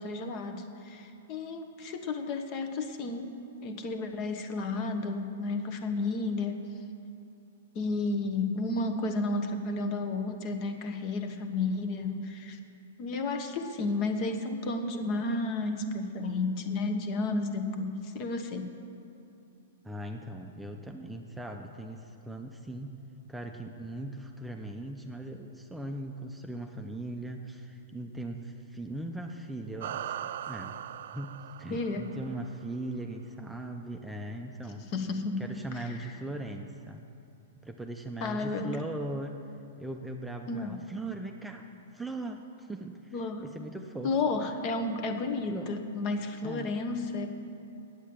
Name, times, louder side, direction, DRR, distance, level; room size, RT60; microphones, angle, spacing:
voice 1, 0.0-6.6 7.7-12.6 13.0-18.7 31.7-32.1 34.8-35.4 35.7-36.1 38.2-38.8 40.5-40.8 43.1-43.4 44.0-47.3, left 3 dB, 40° left, 5 dB, 1.1 m, -32 dB
voice 2, 19.8-23.0 23.3-30.8 31.1-34.9 35.4-37.1 37.6-39.4 39.8-44.5 45.5-45.7 46.4-46.7, right 1 dB, 5° right, 3 dB, 0.6 m, -39 dB
sound 1, 29.8-32.6, right 11 dB, 65° right, 0.3 m, -39 dB
8.9 x 8.2 x 8.8 m, 2.8 s
hypercardioid pair, 135°, 0 cm